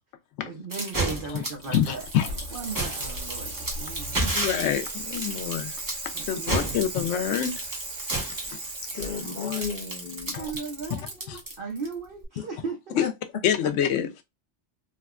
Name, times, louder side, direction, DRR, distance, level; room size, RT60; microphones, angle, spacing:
voice 1, 0.4-4.2 6.1-6.8 9.1-9.2 10.2-13.0, right 5 dB, 55° right, 0.7 m, -37 dB
sound 1, 0.7-11.9, right 2 dB, 20° right, 0.8 m, -31 dB
Bicycle, 1.5-11.1 12.2-12.3, right 2 dB, 75° right, 1.6 m, -37 dB
voice 2, 1.7-2.3 4.3-5.7 6.3-7.6 8.5-8.6 8.9-9.0 10.3-10.5 11.3-11.4 13.0-13.1 13.4-14.1, left 9 dB, 85° left, 0.9 m, -26 dB
voice 3, 8.9-10.4 12.4-12.5 13.0-13.1, left 7 dB, 55° left, 0.5 m, -33 dB
3.4 x 2.1 x 2.3 m
omnidirectional pair, 1.3 m